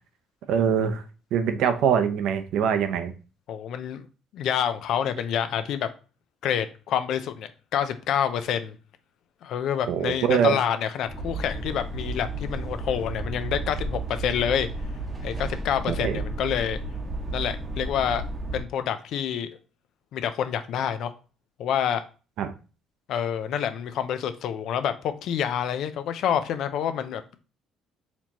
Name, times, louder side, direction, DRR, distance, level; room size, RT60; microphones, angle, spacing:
voice 1, 0.5-1.0 1.3-3.1 9.9-10.6 15.9-16.2 22.4-22.5, right 7 dB, 75° right, 0.5 m, -23 dB
voice 2, 3.5-4.0 4.3-5.9 6.4-8.8 9.4-14.7 15.2-16.8 17.3-18.2 18.5-19.5 20.1-21.1 21.6-22.0 23.1-27.2, left 9 dB, 70° left, 0.4 m, -27 dB
sound 1, 11.1-18.6, right 2 dB, 25° right, 0.8 m, -33 dB
4.3 x 2.9 x 2.8 m
cardioid pair, 100°, 0 cm